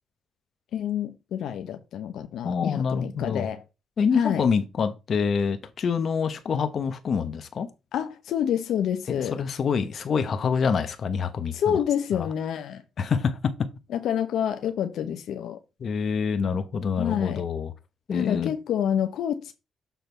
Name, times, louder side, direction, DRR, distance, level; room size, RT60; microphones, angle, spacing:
voice 1, 0.7-3.6 4.1-4.5 7.9-9.4 11.5-12.8 13.9-15.6 17.0-17.4 18.1-19.5, left 9 dB, 75° left, 0.9 m, -28 dB
voice 2, 2.4-3.5 4.0-7.7 9.1-11.5 12.1-12.3 13.0-13.5 15.8-17.7 18.1-18.5, left 6 dB, 50° left, 1.0 m, -26 dB
7.0 x 3.9 x 4.5 m
cardioid pair, 90°, 0 cm